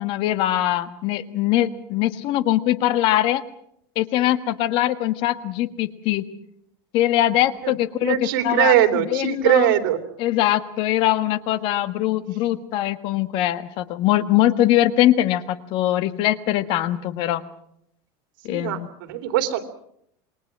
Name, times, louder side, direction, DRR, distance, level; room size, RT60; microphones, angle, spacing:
voice 1, 0.0-3.4 3.9-6.2 6.9-8.2 8.4-8.7 9.1-9.6 10.2-17.4 18.4-18.9, left 13 dB, 50° left, 12 dB, 1.5 m, -22 dB
voice 2, 8.0-10.0 18.5-19.6, right 12 dB, 85° right, 7 dB, 3.1 m, -21 dB
27.5 x 22.0 x 6.1 m, 0.71 s
cardioid pair, 155°, 11 cm